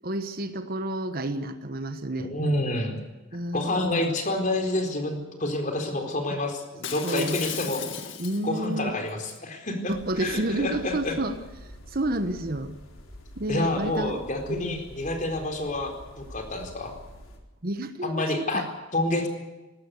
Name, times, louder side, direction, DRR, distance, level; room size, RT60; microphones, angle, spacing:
voice 1, 0.0-2.3 3.3-4.1 6.3-6.4 7.0-8.9 9.9-11.4 11.9-12.8 13.4-14.2 14.5-14.8 17.6-18.7, right 1 dB, 45° right, 9 dB, 1.2 m, -30 dB
voice 2, 2.2-2.9 3.5-7.8 8.4-9.9 10.2-11.2 13.5-16.9 18.0-19.3, left 1 dB, 40° left, 4 dB, 4.2 m, -28 dB
Shatter, 6.8-8.6 9.1-9.4, left 9 dB, 65° left, 2.1 m, -36 dB
sound 1, 9.9-17.4, left 1 dB, 85° left, 4.2 m, -47 dB
20.0 x 18.0 x 8.3 m, 1.1 s
head